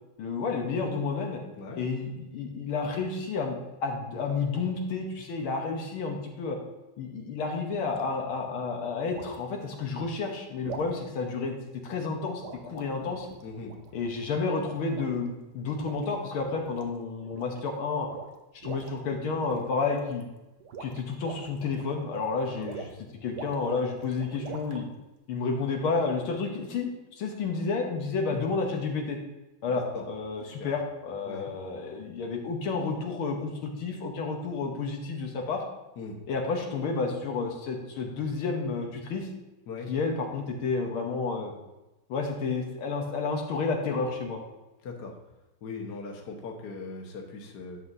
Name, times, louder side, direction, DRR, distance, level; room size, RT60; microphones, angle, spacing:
voice 1, 0.2-1.4 1.7-6.6 7.0-11.5 11.8-13.3 13.9-18.1 18.5-20.3 20.8-22.9 23.2-24.9 25.3-29.2 29.6-35.6 36.3-39.3 39.9-41.5 42.1-44.4, left 4 dB, 75° left, 1 dB, 1.9 m, -31 dB
sound 1, 7.9-8.1 9.1-9.4 10.6-11.0 12.4-14.2 14.9-15.4 15.7-16.1 16.5-16.9 17.2-17.7 18.0-18.9 19.3-20.2 20.6-23.0 23.3-24.8, right 5 dB, 60° right, 1.4 m, -43 dB
voice 2, 13.4-13.7 22.6-22.7 28.3-28.4 29.7-30.0 30.6-30.7 31.3-31.5 36.0-36.2 39.7-39.9 44.8-45.1 45.6-47.8, left 4 dB, 55° left, 0 dB, 1.6 m, -39 dB
11.5 x 7.7 x 2.7 m, 1.0 s
omnidirectional pair, 2.4 m